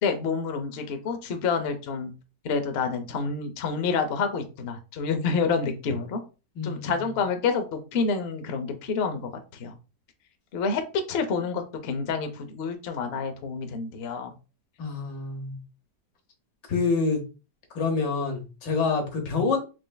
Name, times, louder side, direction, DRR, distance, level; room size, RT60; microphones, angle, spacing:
voice 1, 0.0-2.1 2.4-6.2 6.6-9.3 9.6-9.7 10.5-10.8 11.1-14.3, left 5 dB, 60° left, 6 dB, 0.6 m, -28 dB
voice 2, 6.6-7.1 14.8-15.6 16.7-17.2 17.7-19.6, left 4 dB, 80° left, 2 dB, 1.7 m, -27 dB
4.7 x 3.2 x 2.2 m, 0.31 s
omnidirectional pair, 1.8 m